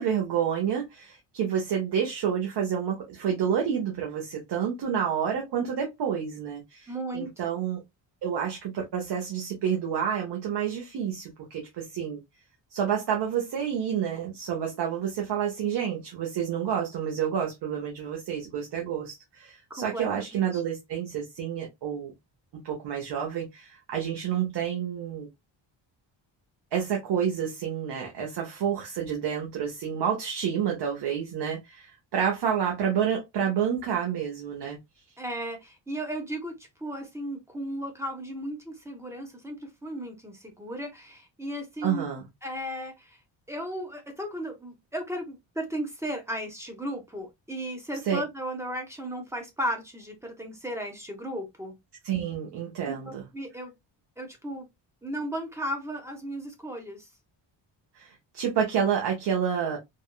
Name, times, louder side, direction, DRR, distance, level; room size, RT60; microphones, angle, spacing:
voice 1, 0.0-7.8 8.2-12.2 12.7-22.1 22.6-25.3 26.7-34.8 41.8-42.2 48.0-48.2 52.0-53.2 57.9-59.8, right 8 dB, 60° right, 0.9 m, -29 dB
voice 2, 6.9-7.5 19.7-20.1 20.3-20.6 35.2-42.1 42.4-43.2 43.5-51.8 52.9-53.7 54.2-54.7 55.0-57.1, equal, 5° right, 0.6 m, -35 dB
3.5 x 2.2 x 2.2 m
wide cardioid pair, 175°, 45 cm